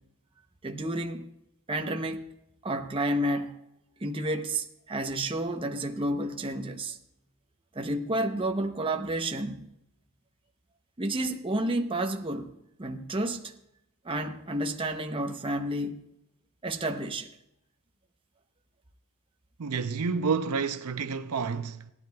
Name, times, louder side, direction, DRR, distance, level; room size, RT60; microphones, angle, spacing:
voice 1, 0.6-1.3 1.7-2.3 2.6-3.5 4.0-7.0 7.7-9.7 11.0-12.5 12.8-13.5 14.0-16.0 16.6-17.3, right 1 dB, 25° right, 0.7 m, -30 dB
voice 2, 19.6-21.9, right 5 dB, 80° right, 0.6 m, -29 dB
17.5 x 12.0 x 2.3 m
head